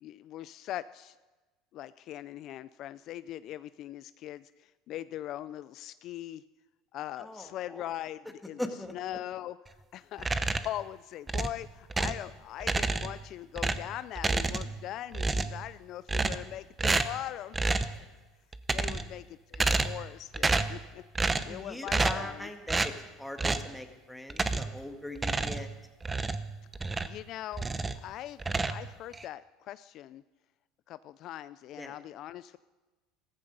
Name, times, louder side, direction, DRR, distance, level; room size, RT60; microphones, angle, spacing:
voice 1, 0.0-1.2 1.7-6.4 6.9-8.6 8.9-9.6 9.9-17.6 18.7-21.0 21.4-22.5 27.0-27.7 28.0-30.2 30.9-32.6, left 13 dB, 55° left, 15 dB, 0.4 m, -41 dB
voice 2, 7.2-7.8 8.6-8.9 17.9-18.1 18.9-19.0 21.5-22.9 23.2-25.7 31.8-31.9, left 1 dB, 5° left, 5 dB, 1.8 m, -40 dB
sound 1, 10.2-10.8 11.3-12.3 12.6-13.2 13.6-14.8 15.1-15.7 16.1-16.5 16.8-17.2 17.5-18.0 18.5-19.2 19.5-20.1 20.3-20.8 21.2-21.6 21.9-22.3 22.7-23.0 23.4-23.7 24.3-24.8 25.2-27.2 27.5-28.0 28.4-29.2, right 3 dB, 20° right, 0.9 m, -30 dB
14.5 x 14.5 x 5.3 m, 1.2 s
supercardioid pair, 100°, 0 cm